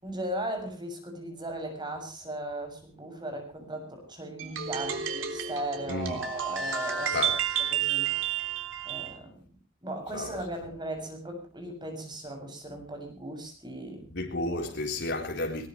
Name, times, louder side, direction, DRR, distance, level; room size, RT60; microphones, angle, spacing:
voice 1, 0.0-7.2 7.5-8.2 8.8-9.4 9.8-14.1, right 1 dB, 25° right, 6.8 m, -37 dB
sound 1, 4.4-9.1, right 8 dB, 80° right, 3.5 m, -31 dB
voice 2, 5.9-6.2 7.1-7.3 10.1-10.3 14.1-15.7, left 2 dB, 60° left, 3.8 m, -31 dB
21.0 x 20.5 x 3.2 m
head